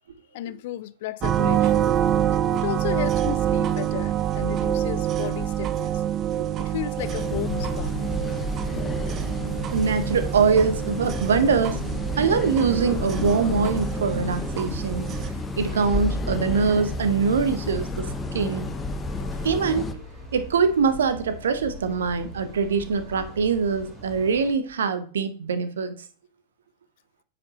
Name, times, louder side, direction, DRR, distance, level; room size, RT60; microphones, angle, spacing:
voice 1, 0.3-1.9 2.5-5.9 6.6-8.0 19.2-19.3, left 15 dB, 50° left, 0.4 m, -33 dB
sound 1, 1.2-15.3, right 11 dB, 30° right, 0.4 m, -27 dB
sound 2, 7.0-19.9, left 2 dB, 15° left, 0.7 m, -31 dB
sound 3, 7.4-24.5, left 1 dB, 10° right, 2.5 m, -40 dB
voice 2, 9.7-11.8 12.2-15.1 15.6-18.7 19.4-20.0 20.3-25.9, right 5 dB, 65° right, 0.8 m, -23 dB
9.3 x 5.0 x 2.9 m
figure-of-eight pair, 90°, 0 cm